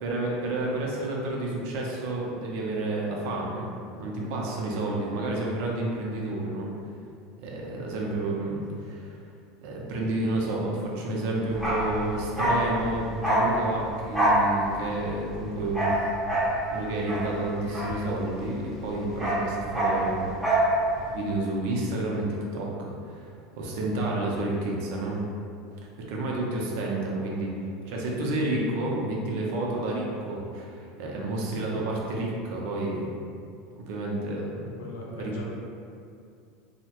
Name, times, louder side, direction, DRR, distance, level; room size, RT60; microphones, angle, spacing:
voice 1, 0.0-6.7 7.4-9.2 9.6-16.1 16.7-20.3 21.1-22.3 22.5-25.2 26.1-27.5 27.9-33.3 33.8-34.7 35.2-35.3, right 2 dB, 65° right, -2 dB, 0.5 m, -30 dB
Bark, 11.5-18.5 18.8-20.7 21.0-21.1, right 1 dB, ahead, 0.7 m, -26 dB
voice 2, 34.8-35.4, left 2 dB, 85° left, -3 dB, 0.6 m, -41 dB
2.7 x 2.1 x 2.9 m, 2.4 s
supercardioid pair, 145°, 0 cm